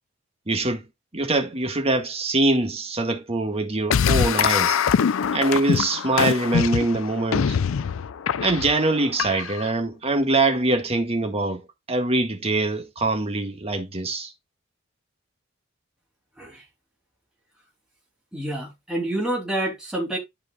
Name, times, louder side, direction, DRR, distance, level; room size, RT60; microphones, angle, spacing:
voice 1, 0.5-0.8 1.1-4.8 5.3-7.6 8.4-11.6 11.9-14.3, right 2 dB, 30° right, 1.7 m, -23 dB
sound 1, 3.9-9.7, left 7 dB, 80° left, 0.4 m, -23 dB
voice 2, 18.3-20.2, right 1 dB, 5° right, 3.1 m, -28 dB
12.5 x 5.0 x 2.3 m
head